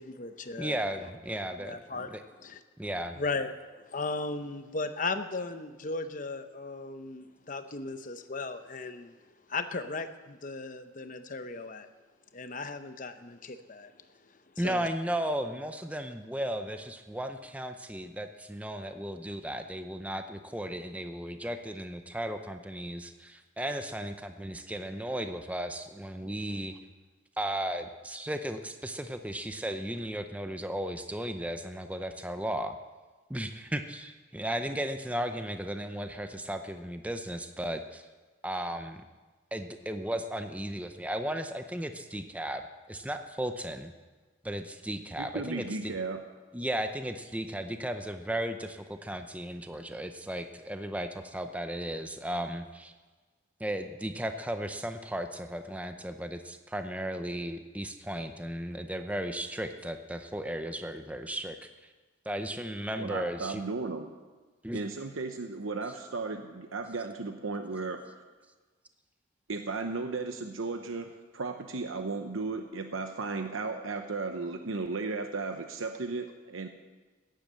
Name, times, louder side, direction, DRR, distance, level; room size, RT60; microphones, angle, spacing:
voice 1, 0.0-0.8 1.6-2.6 3.1-9.1 9.5-11.9 12.3-13.9 14.6-14.9, left 3 dB, 40° left, 9 dB, 0.9 m, -36 dB
voice 2, 0.6-1.8 2.1-2.2 2.8-3.2 14.6-26.8 27.4-32.8 33.3-38.0 38.4-39.0 39.5-43.9 44.4-45.9 46.5-52.9 53.6-61.7 62.3-63.6 64.6-64.8, right 1 dB, 5° right, 7 dB, 0.6 m, -35 dB
voice 3, 45.2-46.2 63.0-64.1 64.7-68.2 69.5-76.7, right 3 dB, 90° right, 6 dB, 0.9 m, -35 dB
15.0 x 10.5 x 7.6 m, 1.3 s
head